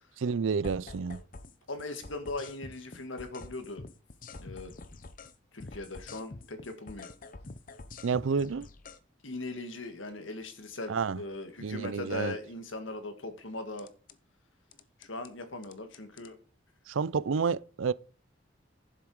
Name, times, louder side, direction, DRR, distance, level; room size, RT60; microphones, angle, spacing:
voice 1, 0.2-1.2 8.0-8.7 10.9-11.2 11.6-12.3 16.9-17.9, right 5 dB, 85° right, 0.5 m, -29 dB
sound 1, 0.6-1.5 1.8-5.4 5.6-9.0 13.8-14.2 14.7-15.3 15.6-16.3, left 3 dB, 45° left, 0.7 m, -46 dB
voice 2, 1.7-3.9 4.4-4.7 5.5-7.1 9.2-13.9 15.0-16.4, left 2 dB, 85° left, 1.7 m, -39 dB
11.0 x 7.6 x 4.7 m
head